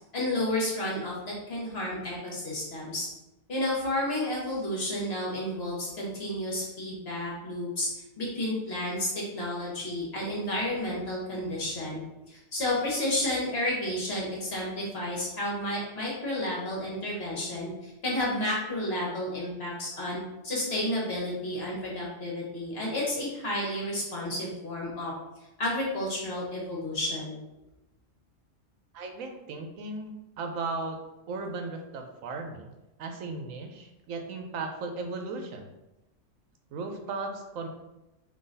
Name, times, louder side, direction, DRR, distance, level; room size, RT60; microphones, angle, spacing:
voice 1, 0.1-3.1 3.5-7.9 8.2-25.1 25.6-27.4, left 1 dB, 50° left, -4 dB, 1.6 m, -31 dB
voice 2, 28.9-31.0 31.3-32.7 33.0-35.7 36.7-37.7, right 3 dB, 80° right, 5 dB, 1.0 m, -36 dB
3.9 x 3.0 x 3.9 m, 0.96 s
omnidirectional pair, 1.4 m